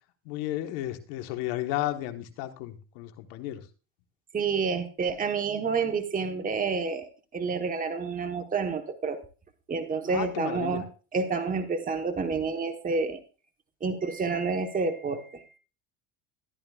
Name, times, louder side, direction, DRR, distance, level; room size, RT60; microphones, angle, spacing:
voice 1, 0.2-3.6 10.1-10.8, left 14 dB, 75° left, 7 dB, 1.4 m, -33 dB
voice 2, 4.3-9.2 9.7-13.2 13.8-15.4, right 4 dB, 20° right, 6 dB, 1.2 m, -29 dB
14.0 x 10.5 x 2.4 m, 0.35 s
supercardioid pair, 110°, 40 cm